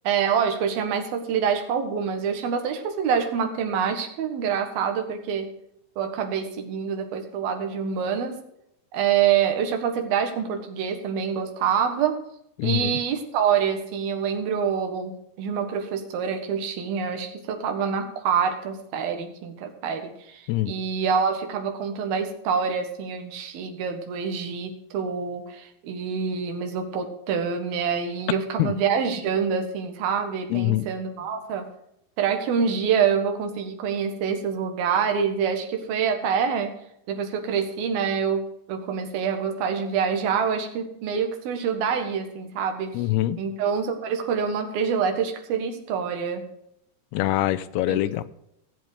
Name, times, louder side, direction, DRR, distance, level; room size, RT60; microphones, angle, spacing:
voice 1, 0.0-5.5 6.0-8.4 8.9-12.2 12.6-15.1 15.4-31.7 32.2-36.7 37.1-42.9 43.4-46.4 47.9-48.0, right 7 dB, 65° right, 5 dB, 3.3 m, -26 dB
voice 2, 12.6-13.0 20.5-20.7 28.6-28.7 30.5-30.9 42.9-43.4 47.1-48.2, left 15 dB, 80° left, 13 dB, 2.5 m, -24 dB
17.0 x 7.7 x 5.0 m, 0.78 s
omnidirectional pair, 4.9 m